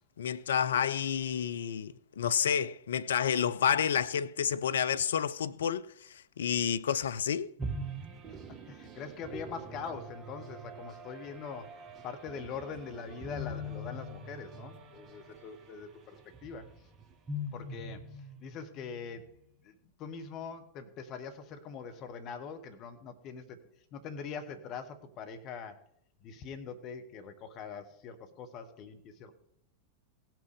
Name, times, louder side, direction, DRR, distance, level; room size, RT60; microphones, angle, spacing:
voice 1, 0.2-7.5, left 8 dB, 65° left, 0.4 m, -30 dB
sound 1, 7.6-19.2, equal, 25° right, 1.3 m, -43 dB
voice 2, 8.3-11.8 12.0-16.7 17.5-19.3 19.6-23.6 23.9-25.8 26.2-29.3, left 5 dB, 35° left, 1.3 m, -43 dB
18.0 x 6.0 x 5.0 m
figure-of-eight pair, 90°, 0 cm